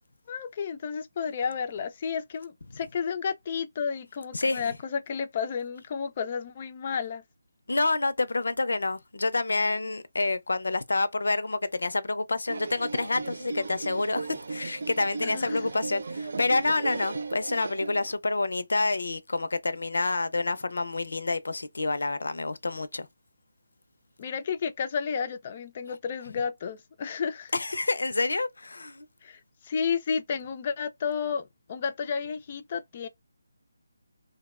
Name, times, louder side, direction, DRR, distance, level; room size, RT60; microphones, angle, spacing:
voice 1, 0.3-7.2 15.2-15.7 24.2-27.5 29.2-33.1, left 6 dB, 30° left, 0.4 m, -32 dB
voice 2, 4.3-4.8 7.7-23.1 27.5-29.1, left 3 dB, 80° left, 0.6 m, -28 dB
sound 1, 12.5-18.1, right 4 dB, 60° right, 0.4 m, -36 dB
2.5 x 2.1 x 2.4 m
figure-of-eight pair, 165°, 0 cm